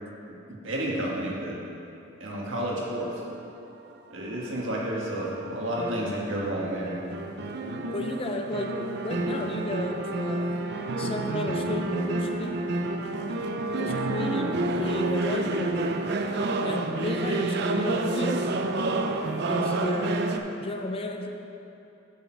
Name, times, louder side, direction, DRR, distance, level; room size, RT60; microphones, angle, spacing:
voice 1, 0.5-1.5 2.2-3.1 4.1-6.9, right 1 dB, 80° right, -4 dB, 1.6 m, -31 dB
sound 1, 4.1-20.4, right 2 dB, 55° right, 0.5 m, -29 dB
voice 2, 7.9-10.5 11.0-12.6 13.8-16.0 16.6-18.5 19.4-20.3 20.6-21.3, left 2 dB, 30° left, 4 dB, 0.5 m, -33 dB
8.3 x 6.2 x 4.6 m, 2.8 s
head